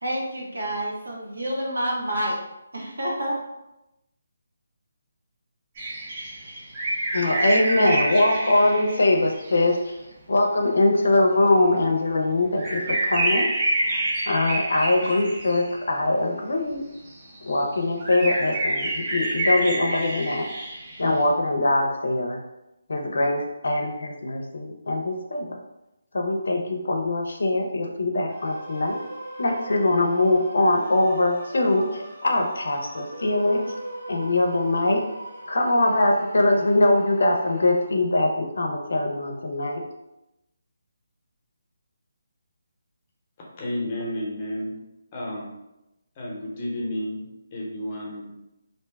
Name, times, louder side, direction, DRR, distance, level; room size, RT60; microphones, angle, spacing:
voice 1, 0.0-2.4 2.7-3.4, equal, 85° right, -2 dB, 0.9 m, -28 dB
sound 1, 5.8-9.6 11.5-11.6 12.6-16.0 17.1-17.6 18.0-21.1, right 1 dB, 35° right, 0.7 m, -27 dB
voice 2, 7.1-10.0 10.3-13.5 13.9-16.9 17.4-20.5 21.0-22.4 22.9-25.6 26.1-29.0 29.4-33.7 34.1-35.1 35.5-39.8, left 2 dB, 75° left, 2 dB, 0.5 m, -22 dB
sound 2, 28.3-37.8, right 1 dB, 55° right, 1.5 m, -40 dB
voice 3, 43.6-44.7 45.1-45.5 46.1-48.3, left 1 dB, 25° left, -3 dB, 0.8 m, -31 dB
2.7 x 2.1 x 3.4 m, 0.92 s
figure-of-eight pair, 160°, 0 cm